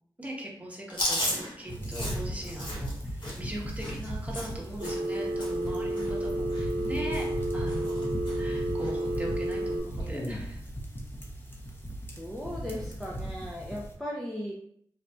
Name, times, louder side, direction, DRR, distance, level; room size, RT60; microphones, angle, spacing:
voice 1, 0.2-7.2 7.5-8.0 8.4-10.6, right 1 dB, 15° right, -3 dB, 1.1 m, -40 dB
Chewing mastication, 0.9-5.1 5.4-5.7 5.9-6.9 7.1-7.4 7.7-8.4 8.8-8.9 10.0-10.4, left 1 dB, 60° left, 1.5 m, -35 dB
sound 1, 1.7-13.9, equal, 25° left, 0.9 m, -37 dB
Telephone, 4.8-9.8, right 1 dB, 85° right, 0.9 m, -31 dB
voice 2, 12.2-14.5, equal, ahead, -3 dB, 0.5 m, -37 dB
3.9 x 2.6 x 2.2 m, 0.69 s
cardioid pair, 50°, 9 cm